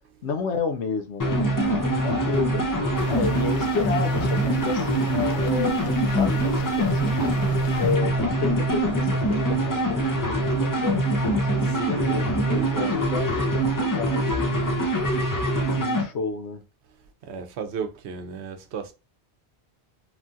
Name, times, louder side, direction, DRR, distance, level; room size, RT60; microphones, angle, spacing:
voice 1, 0.2-2.6 3.1-7.4 7.8-12.3 12.7-15.0 15.8-16.6, left 5 dB, 90° left, 0.9 m, -31 dB
sound 1, 1.2-16.1, right 1 dB, 30° left, 0.3 m, -24 dB
sound 2, 1.6-10.4, equal, 20° right, 0.9 m, -43 dB
sound 3, 2.9-8.0, left 3 dB, 55° left, 0.7 m, -38 dB
voice 2, 11.8-12.9 17.2-18.9, right 6 dB, 80° right, 0.9 m, -34 dB
3.0 x 2.3 x 2.6 m
omnidirectional pair, 1.1 m